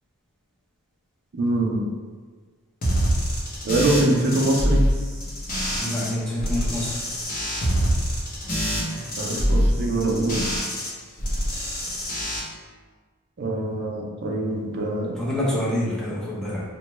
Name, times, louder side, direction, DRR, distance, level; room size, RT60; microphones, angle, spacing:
voice 1, 1.3-1.8 3.6-4.8 9.2-10.5 13.4-15.2, right 2 dB, 50° right, -1 dB, 0.5 m, -24 dB
sound 1, 2.8-6.1 6.4-10.9 11.2-12.4, equal, 40° left, 0.7 m, -25 dB
voice 2, 5.8-7.0 8.4-8.5 8.9-9.0 15.2-16.6, left 1 dB, 5° left, -7 dB, 0.6 m, -27 dB
3.0 x 2.2 x 3.0 m, 1.5 s
head